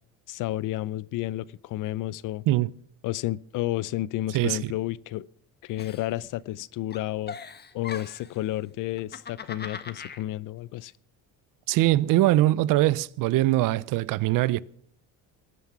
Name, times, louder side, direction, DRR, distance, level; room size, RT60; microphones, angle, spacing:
voice 1, 0.3-2.4 3.0-5.3 5.6-7.4 7.7-10.9, left 15 dB, 60° left, 0.6 m, -31 dB
voice 2, 4.3-4.7 11.7-14.6, right 16 dB, 65° right, 0.6 m, -22 dB
Giggle, 5.8-6.6 6.9-8.4 8.9-10.2, left 6 dB, 30° left, 1.5 m, -40 dB
20.0 x 9.6 x 5.9 m
cardioid pair, 110°, 35 cm